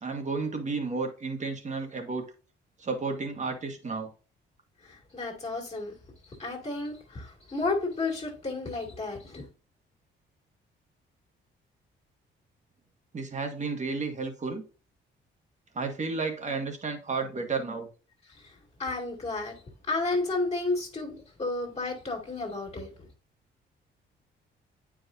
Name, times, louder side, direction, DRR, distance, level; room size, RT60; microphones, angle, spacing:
voice 1, 0.0-2.2 2.8-4.1 13.1-14.6 15.7-17.9, right 4 dB, 35° right, 1.7 m, -32 dB
voice 2, 4.8-5.9 6.4-9.5 18.8-19.6 19.9-22.9, left 3 dB, 30° left, 2.1 m, -32 dB
8.7 x 4.9 x 2.6 m
cardioid pair, 90°, 20 cm